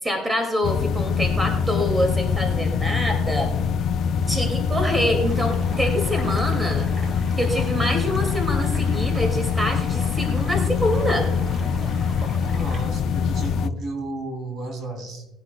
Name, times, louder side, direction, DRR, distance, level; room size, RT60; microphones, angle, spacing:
voice 1, 0.0-3.5 4.3-6.8 7.4-11.3, equal, 10° right, 3 dB, 2.3 m, -25 dB
sound 1, 0.6-13.7, left 6 dB, 55° left, 0.4 m, -24 dB
sound 2, 5.2-12.8, right 1 dB, 35° right, 2.7 m, -42 dB
voice 2, 12.5-15.2, right 2 dB, 55° right, 3 dB, 3.2 m, -33 dB
19.5 x 10.5 x 2.3 m, 0.97 s
cardioid pair, 115°, 0 cm